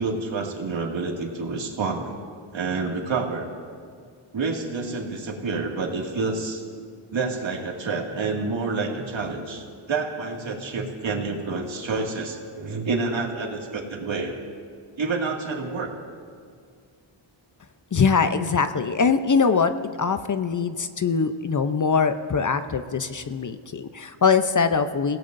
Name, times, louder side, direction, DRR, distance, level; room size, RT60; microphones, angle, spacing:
voice 1, 0.0-2.1 2.5-3.5 4.3-6.6 7.1-14.4 15.0-15.9, right 4 dB, 65° right, 0 dB, 2.3 m, -28 dB
voice 2, 17.9-19.7 20.0-25.2, left 5 dB, 40° left, 10 dB, 0.7 m, -22 dB
29.5 x 17.0 x 2.6 m, 2.1 s
cardioid pair, 80°, 50 cm